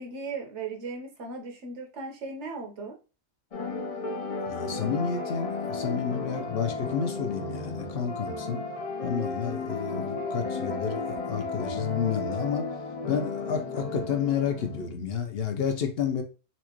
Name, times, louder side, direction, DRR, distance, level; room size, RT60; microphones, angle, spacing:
voice 1, 0.0-3.0, right 4 dB, 85° right, 1.2 m, -37 dB
sound 1, 3.5-14.9, left 3 dB, 40° left, 0.5 m, -34 dB
voice 2, 4.5-8.6 9.0-12.7 13.1-16.2, left 7 dB, 65° left, 0.9 m, -30 dB
4.3 x 2.5 x 2.8 m
omnidirectional pair, 1.2 m